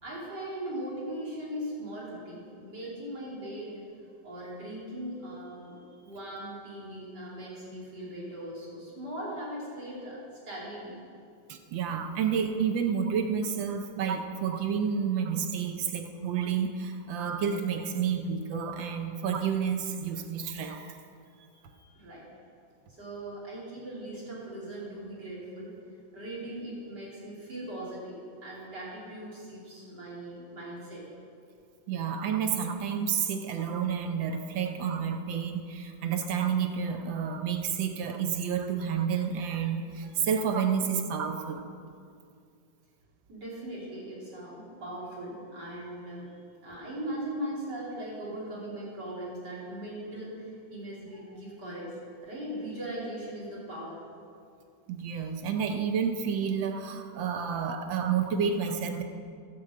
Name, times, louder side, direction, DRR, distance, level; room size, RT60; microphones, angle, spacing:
voice 1, 0.0-3.8 4.2-10.2 10.5-11.0 21.7-22.3 23.0-25.7 26.1-31.0 43.3-46.3 46.6-51.9 52.2-54.0, right 1 dB, 60° right, -7 dB, 3.7 m, -39 dB
voice 2, 11.5-20.9 31.9-41.6 54.9-59.0, right 7 dB, 75° right, 6 dB, 1.5 m, -30 dB
11.5 x 6.2 x 7.4 m, 2.4 s
omnidirectional pair, 2.1 m